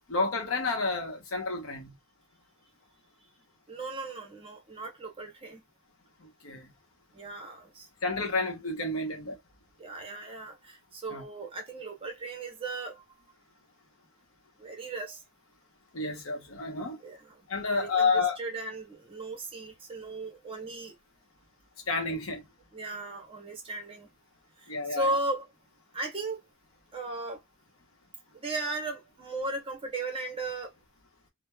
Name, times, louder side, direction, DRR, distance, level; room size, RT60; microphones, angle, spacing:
voice 1, 0.1-1.9 6.2-6.7 8.0-9.4 11.1-11.2 15.9-17.0 17.5-18.4 21.9-22.4 24.7-25.1, left 3 dB, 65° left, 0.8 m, -30 dB
voice 2, 3.7-5.6 7.1-7.9 9.8-13.0 14.6-15.2 17.0-20.9 22.7-24.1 24.6-25.5 25.9-26.4 26.9-27.4 28.3-30.7, right 2 dB, 25° right, 0.8 m, -36 dB
3.0 x 2.1 x 2.2 m
head